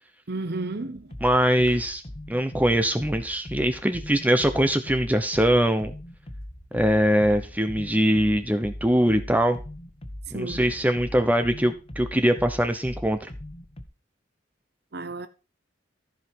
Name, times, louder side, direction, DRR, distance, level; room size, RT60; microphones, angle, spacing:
voice 1, 0.3-1.2 10.3-10.6 14.9-15.3, right 2 dB, 60° right, 0.9 m, -32 dB
sound 1, 1.0-13.8, left 1 dB, 30° left, 1.4 m, -40 dB
voice 2, 1.2-2.0 2.3-5.9 6.7-9.6 10.3-13.3, equal, 10° right, 0.8 m, -22 dB
14.5 x 5.7 x 4.5 m
head